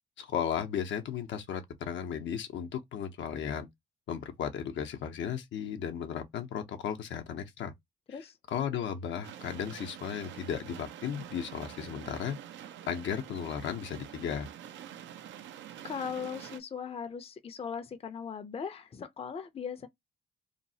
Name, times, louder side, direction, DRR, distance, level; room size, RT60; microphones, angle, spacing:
voice 1, 0.2-3.7 4.1-7.7 8.5-12.4 12.9-14.5, left 8 dB, 70° left, 0.7 m, -35 dB
sound 1, 9.2-16.6, right 10 dB, 70° right, 0.5 m, -46 dB
voice 2, 15.8-19.9, left 7 dB, 30° left, 0.5 m, -39 dB
2.8 x 2.0 x 2.7 m
cardioid pair, 90°, 20 cm